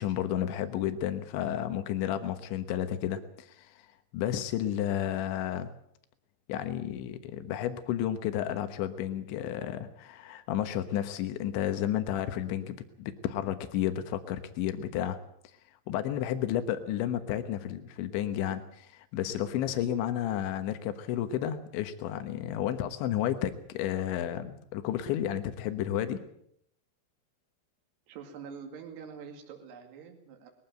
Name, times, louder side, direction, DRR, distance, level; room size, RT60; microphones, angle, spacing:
voice 1, 0.0-3.9 4.1-5.7 6.5-15.2 15.9-26.2, left 11 dB, 85° left, 9 dB, 3.6 m, -32 dB
voice 2, 28.1-30.5, right 6 dB, 70° right, 3 dB, 4.3 m, -45 dB
21.0 x 15.5 x 9.0 m, 0.72 s
omnidirectional pair, 5.1 m